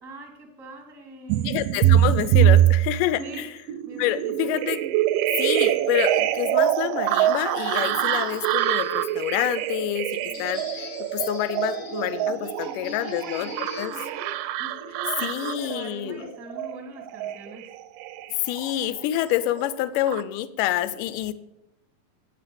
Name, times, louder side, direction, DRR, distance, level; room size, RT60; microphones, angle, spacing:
voice 1, 0.0-1.5 3.2-3.5 3.8-4.5 12.2-14.3 14.6-17.7, right 1 dB, 15° right, 2 dB, 1.0 m, -42 dB
sound 1, 1.3-19.0 19.4-20.2, right 12 dB, 80° right, 2.0 m, -24 dB
voice 2, 1.4-3.5 4.0-4.8 5.4-13.5 13.8-13.9 15.2-16.3 18.3-21.3, left 13 dB, 80° left, 14 dB, 2.1 m, -27 dB
sound 2, 5.6-13.9, left 4 dB, 50° left, 1.3 m, -43 dB
9.5 x 8.2 x 6.9 m, 0.89 s
omnidirectional pair, 4.1 m